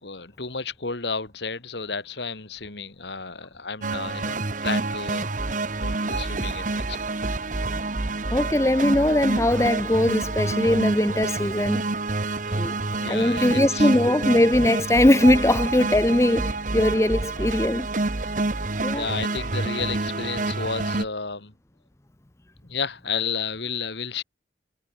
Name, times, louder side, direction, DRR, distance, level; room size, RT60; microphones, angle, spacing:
voice 1, 0.0-5.3 5.8-7.0 12.4-13.9 18.2-18.3 18.9-21.5 22.6-24.2, left 5 dB, 70° left, 2.3 m, -32 dB
sound 1, 3.8-21.1, right 2 dB, 45° right, 1.2 m, -27 dB
voice 2, 8.3-11.8 12.5-17.9 18.8-19.1, left 1 dB, 15° left, 0.6 m, -21 dB
head